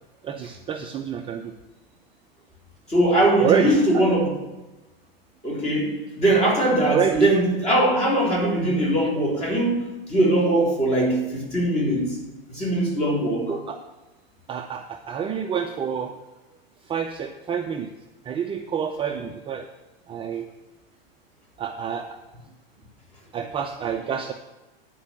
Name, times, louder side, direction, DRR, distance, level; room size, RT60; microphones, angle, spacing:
voice 1, 0.2-1.5 3.4-4.1 6.9-7.3 13.5-13.8 14.5-16.2 16.8-17.9 18.2-19.7 20.1-20.5 21.6-22.2 23.3-24.3, right 7 dB, 20° right, 5 dB, 0.5 m, -27 dB
voice 2, 2.9-4.3 5.4-12.2 12.5-13.5, right 1 dB, 20° left, -4 dB, 3.7 m, -21 dB
10.0 x 4.6 x 7.4 m, 1.1 s
hypercardioid pair, 100°, 29 cm